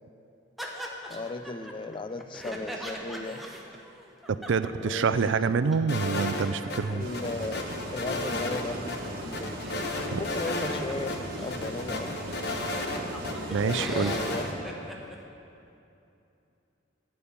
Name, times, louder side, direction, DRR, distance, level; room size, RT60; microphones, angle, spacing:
sound 1, 0.6-5.4 5.7-5.8 6.0-11.7 12.2-12.3 12.6-15.2, equal, ahead, 0.9 m, -41 dB
voice 1, 1.1-3.4 4.8-5.6 6.9-7.6 7.9-9.6 10.0-12.7 13.6-14.8, left 3 dB, 25° left, 11 dB, 0.4 m, -36 dB
voice 2, 4.3-7.1 10.1-10.2 13.5-14.1, right 5 dB, 85° right, 13 dB, 0.4 m, -26 dB
sound 2, 5.9-6.8 7.1-8.6 8.9-9.0 9.3-10.8 11.1-11.2 11.5-13.3 13.7-14.5, left 2 dB, 60° left, 1.0 m, -33 dB
sound 3, 7.0-14.5, equal, 55° right, 1.7 m, -38 dB
13.0 x 5.5 x 8.5 m, 2.7 s
head